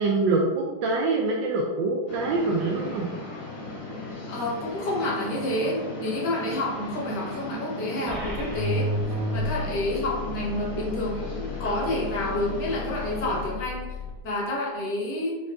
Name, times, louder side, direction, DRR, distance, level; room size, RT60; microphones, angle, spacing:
voice 1, 0.0-3.1, right 3 dB, 80° right, -1 dB, 1.3 m, -25 dB
sound 1, 2.1-13.5, left 2 dB, 85° left, 2.2 m, -37 dB
voice 2, 4.3-14.0 14.2-15.4, left 1 dB, 65° left, -3 dB, 1.7 m, -29 dB
sound 2, 8.1-14.1, left 2 dB, 55° right, 0.8 m, -32 dB
4.7 x 4.6 x 2.4 m, 1.2 s
omnidirectional pair, 2.0 m